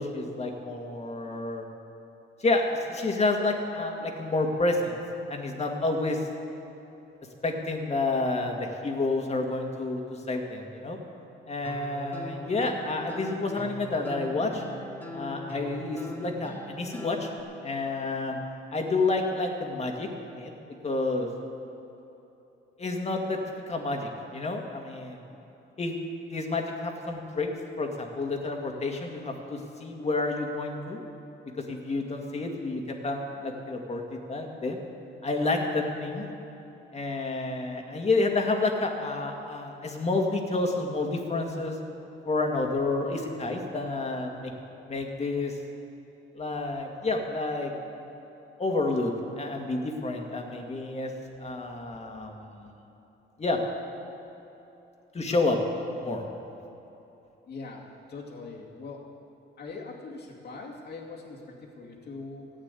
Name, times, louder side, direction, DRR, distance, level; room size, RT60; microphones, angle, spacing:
voice 1, 0.0-1.7 2.4-5.0 5.3-6.2 7.4-11.0 11.5-14.6 15.1-17.3 17.6-18.4 18.7-20.5 20.8-21.3 22.8-23.4 23.7-25.2 25.8-26.0 26.3-27.5 27.8-31.0 31.6-34.8 35.2-36.2 36.9-41.8 42.2-44.5 44.8-45.6 46.3-47.7 48.6-51.1 51.4-52.7 53.4-53.6 55.1-55.6 56.0-56.2, left 2 dB, 35° left, 2 dB, 2.1 m, -29 dB
sound 1, 11.6-17.4, equal, 10° left, 2.0 m, -40 dB
voice 2, 57.5-59.1 59.6-62.5, left 3 dB, 55° left, -1 dB, 2.5 m, -42 dB
15.5 x 8.8 x 8.3 m, 3.0 s
cardioid pair, 90°, 20 cm